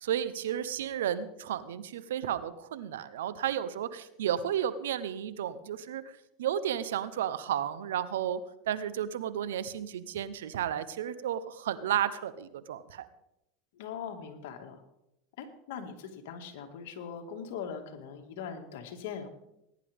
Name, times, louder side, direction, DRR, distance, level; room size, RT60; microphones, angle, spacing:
voice 1, 0.0-8.4 8.7-13.1, right 10 dB, 90° right, 14 dB, 0.9 m, -33 dB
voice 2, 13.7-14.8 15.4-19.3, left 7 dB, 75° left, 4 dB, 2.1 m, -41 dB
20.0 x 10.5 x 3.6 m, 0.86 s
supercardioid pair, 110°, 0 cm